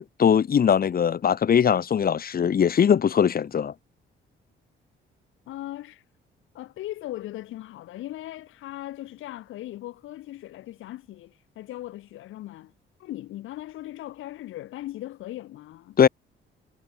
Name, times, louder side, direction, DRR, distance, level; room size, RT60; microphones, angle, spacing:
voice 1, 0.0-3.7 16.0-16.1, left 8 dB, 50° left, 1.7 m, -21 dB
voice 2, 5.5-6.0 6.5-12.7 13.0-16.0, left 15 dB, 85° left, 7.5 m, -38 dB
cardioid pair, 90°, 20 cm